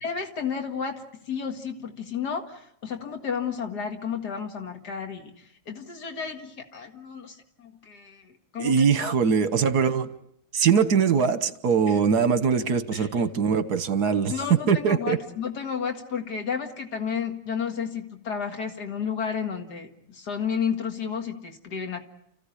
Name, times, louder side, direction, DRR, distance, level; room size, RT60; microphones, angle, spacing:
voice 1, 0.0-9.1 11.9-12.0 12.7-13.1 14.3-22.0, left 6 dB, 90° left, 4 dB, 2.5 m, -32 dB
voice 2, 8.6-10.1 10.5-14.3 14.7-15.2, right 6 dB, 75° right, 12 dB, 1.7 m, -22 dB
29.5 x 15.5 x 9.9 m, 0.75 s
omnidirectional pair, 1.7 m